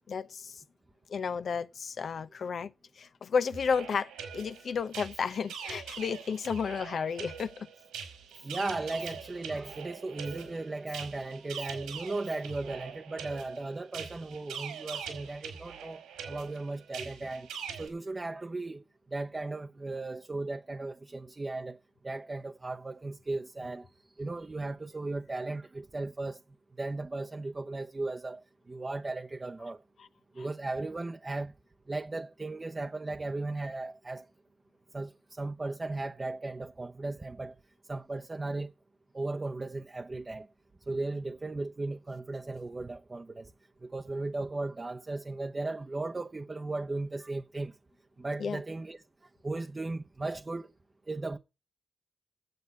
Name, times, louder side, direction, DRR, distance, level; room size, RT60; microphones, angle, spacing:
voice 1, 0.1-0.6 1.1-7.7 30.4-30.5 48.4-48.6, left 6 dB, 65° left, 0.7 m, -32 dB
sound 1, 3.5-17.9, right 7 dB, 90° right, 3.8 m, -43 dB
voice 2, 8.4-17.5 17.8-18.8 19.1-21.8 22.0-23.9 24.2-26.4 26.8-28.4 28.7-29.8 30.3-31.5 31.9-34.3 34.9-37.5 37.9-38.7 39.1-40.5 40.9-43.5 43.8-47.7 48.2-49.0 49.4-50.7 51.1-51.4, right 2 dB, 35° right, 0.8 m, -36 dB
9.2 x 7.7 x 8.2 m
supercardioid pair, 40°, 0 cm